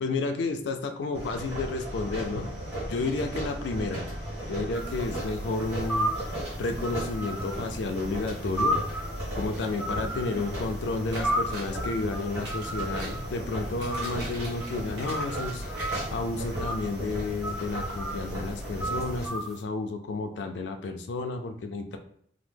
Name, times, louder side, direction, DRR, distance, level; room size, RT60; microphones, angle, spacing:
voice 1, 0.0-2.5 2.9-4.0 4.5-8.8 9.4-15.6 16.1-22.0, left 3 dB, 80° left, 5 dB, 0.4 m, -31 dB
sound 1, 1.1-19.3, equal, 35° right, 1.5 m, -35 dB
sound 2, 4.7-19.6, right 1 dB, ahead, 0.4 m, -35 dB
sound 3, 11.1-11.8 12.3-13.2 13.6-15.5 15.7-16.7 17.0-17.1 17.5-17.6, right 2 dB, 70° right, 1.2 m, -42 dB
2.9 x 2.0 x 3.3 m, 0.66 s
head